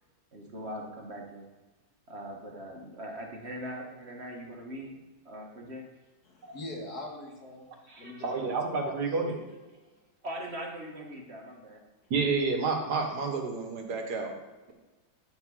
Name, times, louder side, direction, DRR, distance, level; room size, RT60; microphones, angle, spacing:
voice 1, 0.3-1.5 2.1-5.9 7.9-8.5 10.2-11.8, equal, 40° right, 1 dB, 1.6 m, -41 dB
voice 2, 6.3-8.5 8.8-9.2, left 1 dB, 65° left, 0 dB, 2.3 m, -42 dB
voice 3, 8.2-9.4 12.1-14.3, right 4 dB, 70° right, 3 dB, 1.9 m, -29 dB
9.5 x 6.1 x 6.3 m, 1.2 s
omnidirectional pair, 1.8 m